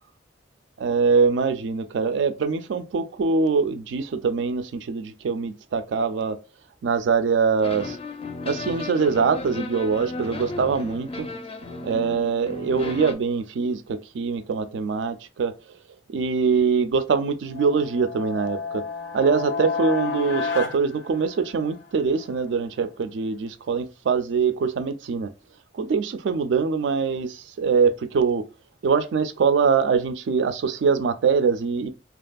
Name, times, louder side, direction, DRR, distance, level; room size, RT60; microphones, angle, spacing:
voice 1, 0.8-6.4 6.8-8.0 8.5-11.3 11.8-15.5 16.1-18.8 19.1-25.3 25.7-28.5 28.8-31.9, right 5 dB, 75° right, 0.4 m, -23 dB
sound 1, 7.6-13.1, left 2 dB, 30° left, 0.4 m, -35 dB
Movie Short Swell, 17.5-21.8, left 5 dB, 85° left, 0.5 m, -31 dB
2.8 x 2.5 x 2.3 m
head